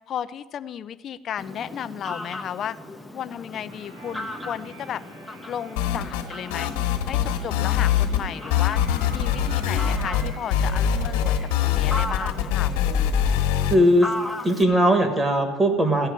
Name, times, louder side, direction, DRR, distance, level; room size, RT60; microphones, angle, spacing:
voice 1, 0.1-2.8 3.1-5.0 5.5-6.7 7.1-11.4 11.6-13.2, left 9 dB, 35° left, 12 dB, 0.4 m, -34 dB
Fowl, 1.4-14.6, left 1 dB, ahead, 0.7 m, -37 dB
Resonated Moan, 3.7-12.2, right 1 dB, 85° right, 3.7 m, -45 dB
sound 1, 5.8-6.3 6.5-8.2 8.5-13.8, left 9 dB, 90° left, 1.4 m, -23 dB
voice 2, 13.7-14.1 14.4-16.1, equal, 15° right, 6 dB, 1.5 m, -19 dB
15.0 x 5.6 x 9.6 m, 1.3 s
cardioid pair, 160°, 0 cm